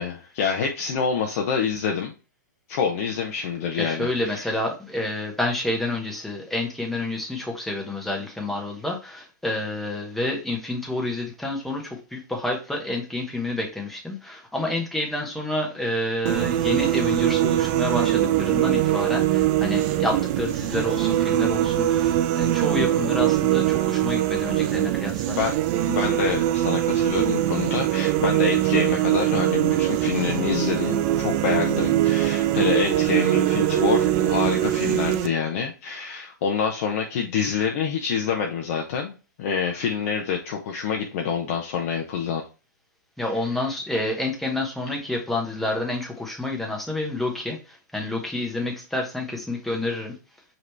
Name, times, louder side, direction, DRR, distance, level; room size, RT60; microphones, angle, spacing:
voice 1, 0.0-2.1 2.7-4.5 25.3-25.5 25.9-42.4 43.5-43.6, left 6 dB, 50° left, 2 dB, 0.7 m, -27 dB
voice 2, 3.7-25.4 43.2-50.2, left 2 dB, ahead, 0 dB, 0.9 m, -29 dB
sound 1, 16.3-35.3, right 13 dB, 35° right, 0.4 m, -22 dB
5.0 x 3.0 x 3.2 m, 0.33 s
hypercardioid pair, 145°, 10 cm